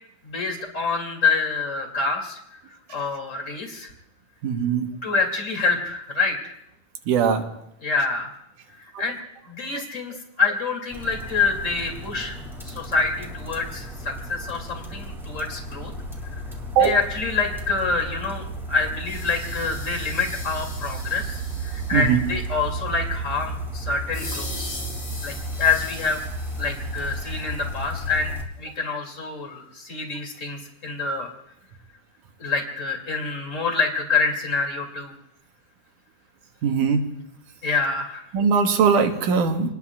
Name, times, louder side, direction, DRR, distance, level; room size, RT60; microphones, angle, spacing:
voice 1, 0.2-2.6 2.9-3.9 5.0-6.6 7.8-8.3 9.0-9.2 9.5-12.4 12.6-15.9 16.3-16.4 16.8-24.7 25.2-26.2 26.6-31.3 32.4-35.1 37.6-38.2, left 4 dB, 25° left, 2 dB, 2.8 m, -26 dB
voice 2, 4.4-4.9 7.1-7.4 16.8-17.0 21.9-22.2 36.6-37.0 38.3-39.7, right 6 dB, 70° right, 4 dB, 2.6 m, -20 dB
sound 1, 10.9-28.4, right 1 dB, ahead, 2.2 m, -34 dB
sound 2, 19.0-22.4 24.1-27.6, left 2 dB, 70° left, 8.9 m, -39 dB
29.0 x 20.0 x 2.5 m, 0.80 s
omnidirectional pair, 4.0 m